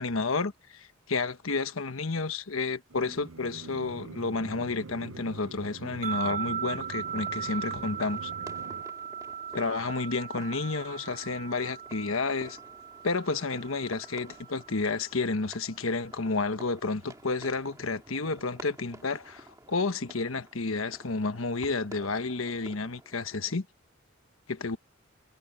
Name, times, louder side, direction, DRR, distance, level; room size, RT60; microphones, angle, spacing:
voice 1, 0.0-8.3 9.5-12.6 13.0-23.6 24.6-24.8, left 3 dB, 85° left, 1.2 m, -31 dB
sound 1, 2.9-8.8, right 3 dB, 75° right, 0.7 m, -45 dB
sound 2, 6.0-15.3, right 8 dB, 45° right, 3.2 m, -38 dB
sound 3, 7.0-23.5, right 1 dB, 15° right, 2.0 m, -52 dB
head